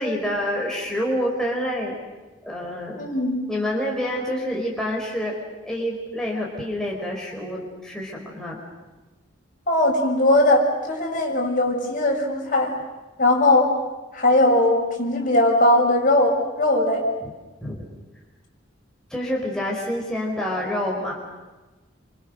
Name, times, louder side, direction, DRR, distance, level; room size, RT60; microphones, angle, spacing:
voice 1, 0.0-2.0 2.4-3.0 3.5-5.3 5.6-8.6 17.2-17.3 17.6-17.8 19.1-21.1, equal, 5° left, -3 dB, 4.4 m, -27 dB
voice 2, 2.9-3.4 9.7-12.7 13.2-13.7 14.1-17.1, left 1 dB, 45° left, -1 dB, 6.6 m, -19 dB
29.5 x 27.5 x 6.6 m, 1.2 s
head